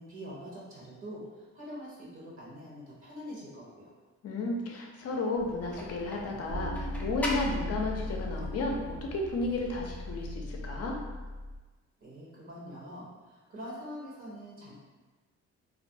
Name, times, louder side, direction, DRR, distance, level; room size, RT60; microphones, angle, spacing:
voice 1, 0.0-3.9 12.0-14.7, equal, 45° right, -6 dB, 0.8 m, -44 dB
voice 2, 4.2-11.0, left 2 dB, 55° left, 0 dB, 0.6 m, -33 dB
sound 1, 5.4-10.4, left 1 dB, 5° left, 0.4 m, -42 dB
sound 2, 6.5-11.6, left 1 dB, 85° right, 0.9 m, -38 dB
2.4 x 2.2 x 2.6 m, 1.3 s
cardioid pair, 90°, 30 cm